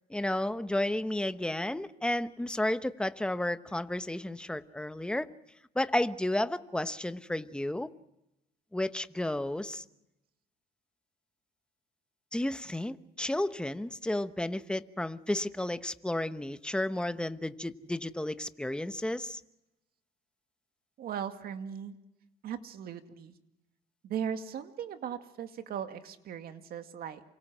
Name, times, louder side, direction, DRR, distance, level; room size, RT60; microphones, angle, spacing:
voice 1, 0.1-5.3 5.7-7.9 8.7-9.8 12.3-19.4, left 1 dB, 5° left, 11 dB, 1.0 m, -32 dB
voice 2, 21.0-22.0 22.4-23.3 24.0-27.2, right 8 dB, 65° right, 7 dB, 2.2 m, -38 dB
28.0 x 25.5 x 6.3 m, 0.89 s
cardioid pair, 110°, 17 cm